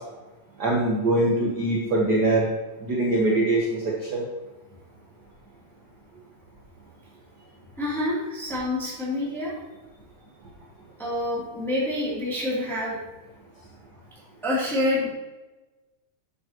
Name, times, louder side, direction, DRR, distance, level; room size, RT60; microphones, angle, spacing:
voice 1, 0.6-2.5 2.8-4.3, right 2 dB, 55° right, -2 dB, 1.1 m, -23 dB
voice 2, 7.8-9.5 11.0-13.0 14.4-15.1, left 1 dB, ahead, -8 dB, 2.7 m, -27 dB
10.5 x 8.3 x 3.0 m, 1.1 s
omnidirectional pair, 3.3 m